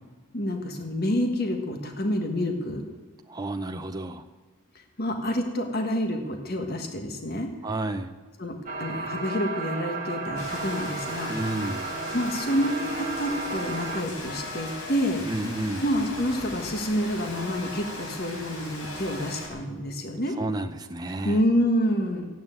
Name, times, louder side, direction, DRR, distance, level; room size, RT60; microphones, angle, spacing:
voice 1, 0.3-2.9 4.7-7.5 8.4-11.3 12.1-15.3 15.8-20.4 21.2-22.3, equal, 45° left, 4 dB, 1.5 m, -28 dB
voice 2, 3.3-4.2 7.6-8.1 11.3-11.9 15.3-15.8 20.4-21.4, right 2 dB, 20° right, 6 dB, 0.6 m, -31 dB
sound 1, 8.7-14.0, right 3 dB, 35° right, 1.5 m, -33 dB
Rain, 10.4-19.5, left 2 dB, 85° left, 4.1 m, -38 dB
14.5 x 9.3 x 8.8 m, 1.3 s
head